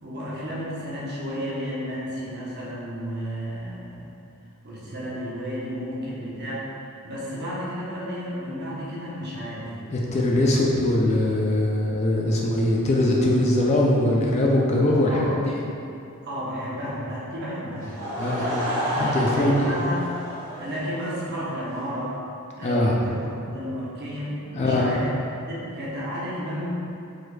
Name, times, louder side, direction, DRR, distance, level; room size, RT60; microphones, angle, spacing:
voice 1, 0.0-4.1 4.6-11.0 15.0-15.3 16.2-17.9 19.3-20.1 20.6-22.2 22.6-25.1 25.4-26.7, equal, 45° right, -7 dB, 1.0 m, -32 dB
voice 2, 9.9-15.6 18.2-18.5 18.9-19.8 22.6-23.0 24.5-24.9, left 1 dB, 30° left, -2 dB, 0.4 m, -21 dB
Laughter / Crowd, 17.8-21.3, equal, 65° right, 1.4 m, -29 dB
5.0 x 4.1 x 2.3 m, 2.7 s
head